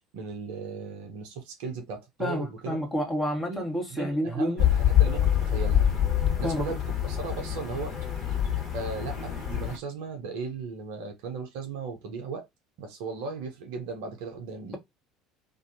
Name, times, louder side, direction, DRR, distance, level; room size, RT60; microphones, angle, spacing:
voice 1, 0.1-2.8 3.5-3.6 3.9-5.9 6.4-6.8 7.0-7.9 8.7-12.5 12.8-14.8, right 4 dB, 60° right, 0.7 m, -36 dB
voice 2, 2.2-4.6 6.4-6.7, equal, 15° left, 1.2 m, -29 dB
sound 1, 4.6-9.8, left 10 dB, 40° left, 1.4 m, -25 dB
2.6 x 2.5 x 2.7 m
figure-of-eight pair, 65°, 0 cm